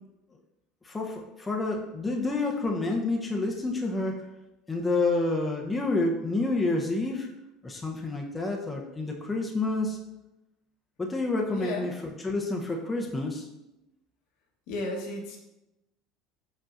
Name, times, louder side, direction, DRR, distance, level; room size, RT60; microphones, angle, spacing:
voice 1, 0.8-4.2 4.7-7.3 7.6-10.0 11.0-11.9 12.2-13.5, left 2 dB, 15° left, 0 dB, 0.7 m, -28 dB
voice 2, 11.4-11.9 14.7-15.4, left 2 dB, 70° left, 0 dB, 1.1 m, -34 dB
4.9 x 4.4 x 2.5 m, 0.94 s
supercardioid pair, 105°, 0 cm